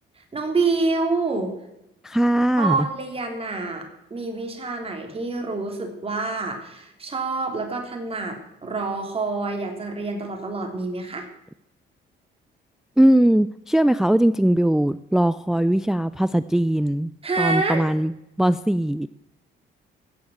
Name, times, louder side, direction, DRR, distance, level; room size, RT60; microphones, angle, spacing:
voice 1, 0.1-1.5 2.6-11.3 17.2-17.8, right 3 dB, 30° right, 3 dB, 3.3 m, -27 dB
voice 2, 2.0-2.9 13.0-17.1 17.4-18.1 18.4-19.1, right 1 dB, ahead, 15 dB, 0.4 m, -20 dB
16.0 x 7.1 x 7.8 m, 0.87 s
cardioid pair, 90°, 20 cm